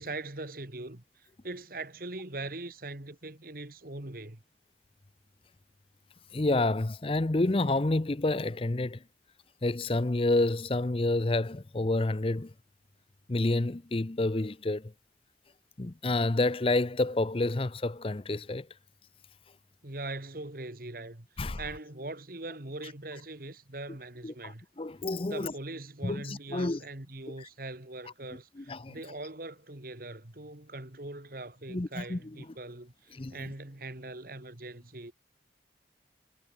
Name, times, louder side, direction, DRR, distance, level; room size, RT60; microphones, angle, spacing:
voice 1, 0.0-4.4 19.8-24.6 25.3-35.1, right 2 dB, 50° right, 2.2 m, -41 dB
voice 2, 6.3-9.0 9.6-12.5 13.3-14.9 15.8-18.7 21.4-21.6 24.2-25.5 26.0-26.8 27.3-27.5 28.6-29.0 31.7-32.2 33.2-33.5, left 2 dB, 30° left, 0.6 m, -29 dB
head